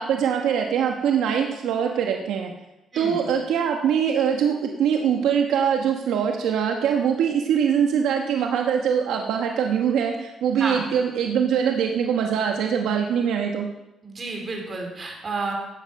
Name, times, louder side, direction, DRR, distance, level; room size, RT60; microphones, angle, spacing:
voice 1, 0.0-2.5 3.0-13.7, right 7 dB, 85° right, 2 dB, 1.1 m, -23 dB
voice 2, 2.9-3.2 10.6-10.9 14.0-15.5, right 3 dB, 40° right, 1 dB, 4.0 m, -31 dB
14.0 x 9.6 x 5.3 m, 0.97 s
cardioid pair, 90°, 0 cm